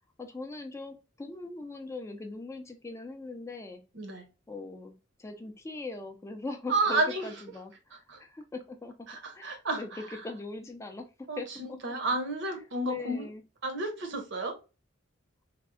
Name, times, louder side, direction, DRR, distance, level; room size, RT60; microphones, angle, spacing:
voice 1, 0.2-3.8 4.5-8.9 9.3-11.1 11.4-11.8 12.8-13.4, left 3 dB, 15° left, 0.3 m, -41 dB
voice 2, 6.7-7.3 8.1-8.2 9.1-10.2 11.3-13.3 13.6-14.6, right 2 dB, 65° right, 0.8 m, -31 dB
3.4 x 2.0 x 2.4 m
head